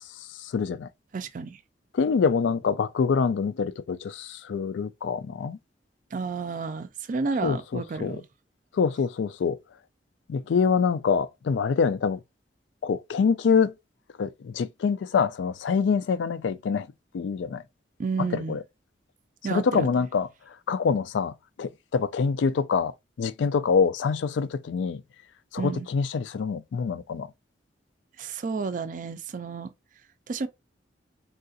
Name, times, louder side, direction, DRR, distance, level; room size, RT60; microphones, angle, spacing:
voice 1, 0.4-0.9 1.9-5.6 7.4-8.2 8.7-9.6 10.3-12.2 12.8-13.7 14.2-16.9 17.1-17.6 18.2-18.6 19.5-20.3 20.7-22.9 23.2-25.0 25.5-27.3, left 5 dB, 80° left, 0.3 m, -25 dB
voice 2, 1.1-1.6 6.1-8.3 18.0-18.6 19.4-20.1 25.6-25.9 28.2-29.7 30.3-30.5, right 4 dB, 45° right, 0.4 m, -31 dB
3.7 x 2.4 x 2.6 m
head